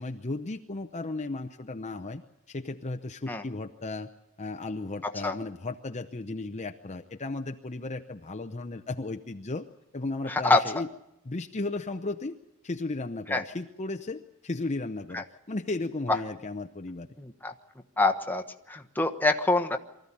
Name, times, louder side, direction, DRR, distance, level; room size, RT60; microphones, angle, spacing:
voice 1, 0.0-2.2 2.5-4.1 4.4-9.6 9.9-10.9 11.2-12.3 12.6-17.1, left 2 dB, 30° left, 5 dB, 0.7 m, -35 dB
voice 2, 10.3-10.6 13.3-13.4 15.1-15.2 17.2-17.5 18.0-19.8, left 2 dB, 10° left, 5 dB, 1.2 m, -25 dB
24.0 x 14.5 x 10.0 m, 0.86 s
head